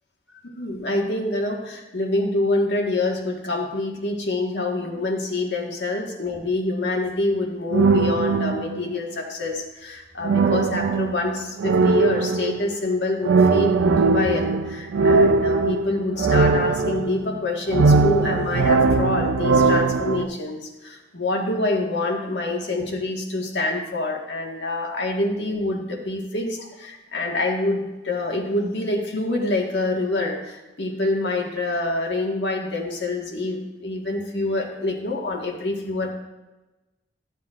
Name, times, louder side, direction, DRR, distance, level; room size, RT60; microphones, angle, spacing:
voice 1, 0.6-36.1, left 2 dB, 65° left, 0 dB, 1.6 m, -26 dB
sound 1, 7.7-8.9 10.2-12.7 13.2-17.4 17.7-20.2, right 4 dB, 85° right, 0.4 m, -20 dB
13.5 x 7.5 x 2.5 m, 1.1 s
head